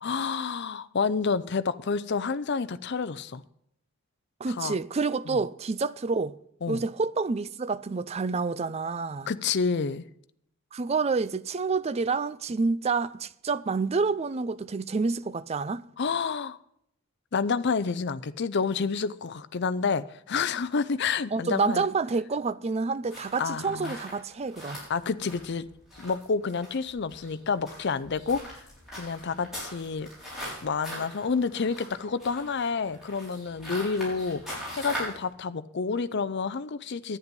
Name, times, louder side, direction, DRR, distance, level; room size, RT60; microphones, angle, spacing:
voice 1, 0.0-3.4 4.5-4.8 5.3-5.4 6.6-6.8 9.3-10.1 16.0-16.6 17.3-21.9 23.4-24.0 24.9-25.7 26.0-28.6 29.0-30.1 30.6-37.2, left 5 dB, 50° left, 0.5 m, -29 dB
voice 2, 4.4-6.4 6.7-9.3 10.7-15.9 21.3-24.8, right 4 dB, 30° right, 0.4 m, -28 dB
sound 1, 23.1-35.2, equal, ahead, 6.1 m, -41 dB
11.0 x 9.7 x 5.3 m
head